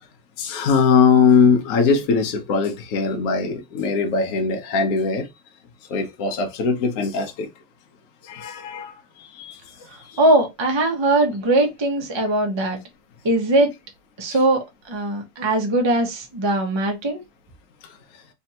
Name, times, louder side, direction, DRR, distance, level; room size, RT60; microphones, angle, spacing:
voice 1, 0.4-5.3 5.9-7.5 8.2-9.6 10.0-10.2, left 5 dB, 60° left, 0.9 m, -20 dB
voice 2, 10.2-12.8 13.2-13.7 14.2-17.2, right 2 dB, 35° right, 0.4 m, -20 dB
3.5 x 3.3 x 2.8 m
omnidirectional pair, 2.4 m